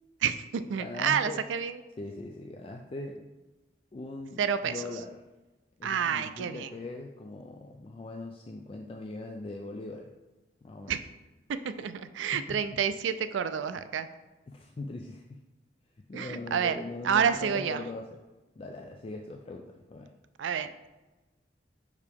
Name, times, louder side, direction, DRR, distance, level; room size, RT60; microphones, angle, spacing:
voice 1, 0.2-1.8 4.4-4.9 5.8-6.7 10.9-11.0 11.6-14.1 16.1-16.8 17.0-17.8 20.4-20.9, right 7 dB, 90° right, 11 dB, 0.4 m, -29 dB
voice 2, 0.8-1.4 2.0-3.3 3.9-5.1 5.8-10.1 10.6-10.9 12.3-12.8 14.5-15.4 16.1-18.1 18.6-20.1, left 2 dB, 30° left, 2 dB, 0.3 m, -40 dB
5.6 x 4.8 x 3.5 m, 1.1 s
head